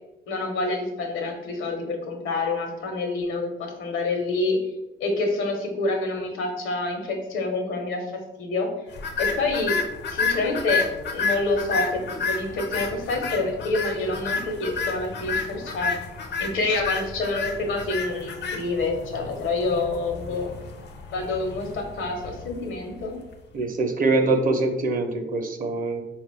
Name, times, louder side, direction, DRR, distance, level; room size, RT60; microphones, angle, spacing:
voice 1, 0.3-4.6 5.0-8.0 8.4-8.7 9.2-9.8 10.1-20.5 21.1-23.2, left 2 dB, 85° left, 3 dB, 0.9 m, -27 dB
sound 1, 9.0-23.3, left 4 dB, 60° left, 0.5 m, -31 dB
voice 2, 23.5-26.0, right 3 dB, 45° right, 5 dB, 0.6 m, -23 dB
4.1 x 2.3 x 3.4 m, 0.96 s
cardioid pair, 90°, 20 cm